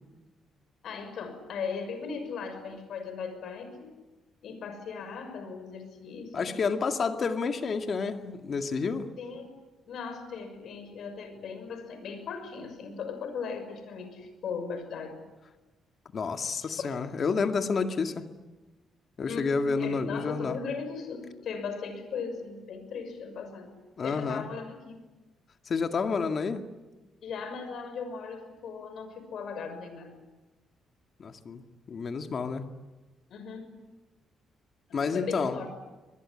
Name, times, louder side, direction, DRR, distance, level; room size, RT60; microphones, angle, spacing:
voice 1, 0.8-4.0 4.4-6.6 9.2-9.5 9.9-15.2 16.6-17.0 19.2-23.7 24.0-25.0 27.2-30.1 33.3-33.8 34.9-35.7, left 5 dB, 70° left, 8 dB, 6.2 m, -38 dB
voice 2, 6.3-9.1 16.1-18.2 19.2-20.6 24.0-24.5 25.7-26.7 31.2-31.6 31.9-32.7 34.9-35.6, left 5 dB, 50° left, 6 dB, 2.1 m, -29 dB
25.0 x 21.0 x 10.0 m, 1.2 s
cardioid pair, 90°, 0 cm